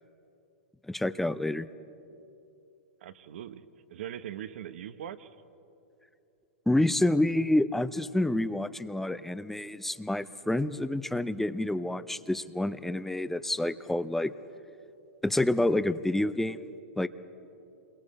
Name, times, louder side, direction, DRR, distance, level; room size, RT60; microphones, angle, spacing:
voice 1, 0.9-1.7 6.7-14.3 15.2-16.6 17.0-17.1, left 1 dB, 5° left, 14 dB, 0.5 m, -28 dB
voice 2, 3.0-5.4, right 10 dB, 70° right, 12 dB, 0.9 m, -41 dB
27.5 x 22.5 x 4.2 m, 2.8 s
hypercardioid pair, 120°, 7 cm